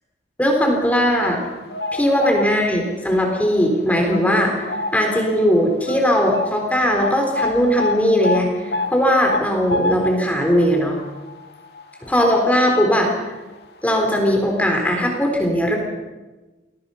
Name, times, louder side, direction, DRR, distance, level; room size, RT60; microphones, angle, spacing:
voice 1, 0.4-1.4 1.9-11.0 12.0-13.3 13.8-15.8, equal, 10° left, 1 dB, 3.9 m, -19 dB
sound 1, 0.9-2.9 3.3-3.6 4.1-5.2 5.5-5.6 5.9-12.9 13.2-13.4 14.2-14.3 14.7-14.8, left 2 dB, 65° left, 2.2 m, -28 dB
28.5 x 21.5 x 5.7 m, 1.2 s
head